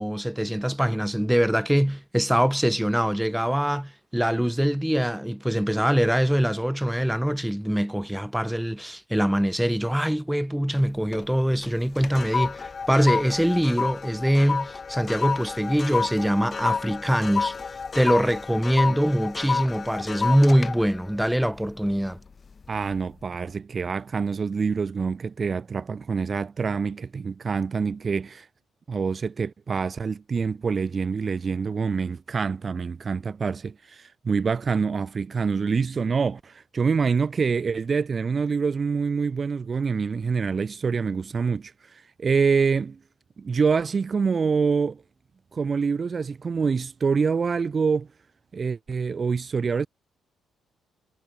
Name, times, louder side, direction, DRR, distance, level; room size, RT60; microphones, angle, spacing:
voice 1, 0.0-17.6 18.0-22.2, equal, 5° right, 2.1 m, -23 dB
sound 1, 10.8-11.3 11.6-22.2 22.6-22.9, left 5 dB, 35° left, 1.4 m, -30 dB
voice 2, 22.7-28.5 28.9-43.0 43.4-45.0 45.5-48.1 48.5-49.9, right 5 dB, 40° right, 1.3 m, -26 dB
cardioid pair, 90°, 0 cm